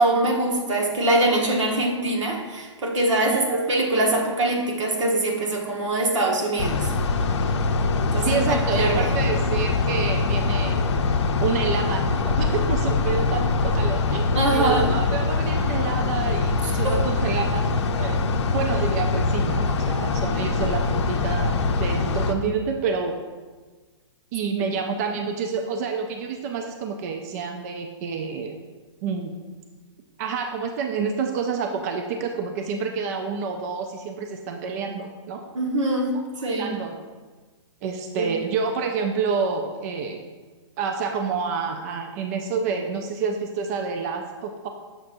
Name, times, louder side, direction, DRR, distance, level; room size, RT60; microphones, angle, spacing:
voice 1, 0.0-6.9 8.1-9.1 14.3-14.9 16.6-17.0 35.5-36.1 36.4-36.7 38.2-38.3, right 2 dB, 75° right, 1 dB, 1.2 m, -23 dB
voice 2, 3.3-3.6 8.1-10.8 11.4-14.3 14.5-17.6 18.0-23.2 24.3-28.6 29.0-29.4 30.2-35.5 36.4-37.0 37.8-40.2 40.8-44.7, right 5 dB, 35° right, 4 dB, 0.4 m, -28 dB
sound 1, 6.6-22.3, left 3 dB, 65° left, 0.6 m, -23 dB
6.5 x 5.8 x 2.5 m, 1.4 s
hypercardioid pair, 150°, 16 cm